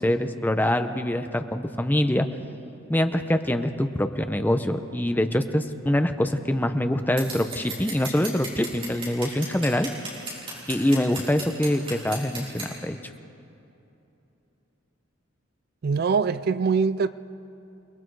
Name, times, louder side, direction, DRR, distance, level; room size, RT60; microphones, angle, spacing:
voice 1, 0.0-2.3 2.9-9.9 10.7-13.0, left 1 dB, 10° left, 8 dB, 0.7 m, -24 dB
Scissors, 7.2-12.7, right 2 dB, 30° right, 5.4 m, -36 dB
voice 2, 15.8-17.1, right 5 dB, 50° right, 15 dB, 0.4 m, -23 dB
29.0 x 20.0 x 4.7 m, 2.9 s
head